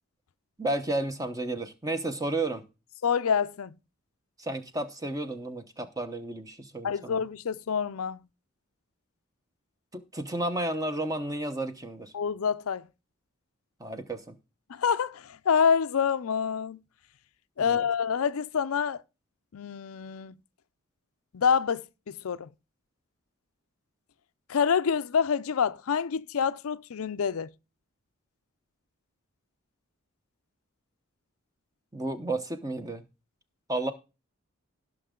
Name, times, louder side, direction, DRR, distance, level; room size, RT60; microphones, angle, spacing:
voice 1, 0.6-2.6 4.4-7.2 9.9-12.1 13.8-14.4 17.6-17.9 31.9-33.0 33.7-33.9, right 2 dB, 15° right, 0.9 m, -32 dB
voice 2, 3.0-3.7 6.8-8.2 12.1-12.9 14.7-16.8 17.6-19.0 19.5-20.4 21.3-22.5 24.5-27.5, left 6 dB, 75° left, 0.5 m, -27 dB
16.5 x 6.1 x 3.7 m
head